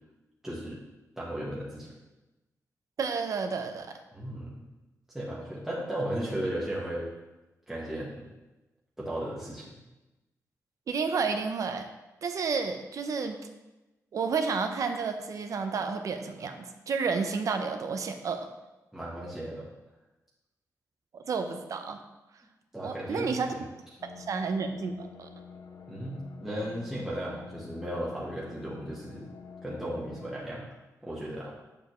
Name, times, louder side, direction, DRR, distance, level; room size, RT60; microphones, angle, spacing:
voice 1, 0.4-0.8 1.2-1.9 4.1-4.6 5.1-7.1 7.7-8.3 9.0-9.7 18.9-19.7 22.7-23.6 25.9-29.3 29.6-30.7 31.0-31.5, right 1 dB, 5° right, -7 dB, 1.3 m, -35 dB
voice 2, 3.0-4.0 10.9-11.9 12.2-13.3 14.1-18.5 21.1-22.0 22.8-23.5 24.1-25.3, right 5 dB, 65° right, 6 dB, 0.7 m, -31 dB
sound 1, 24.0-30.4, left 6 dB, 75° left, 0.8 m, -48 dB
7.1 x 6.9 x 3.1 m, 1.1 s
wide cardioid pair, 115°, 6 cm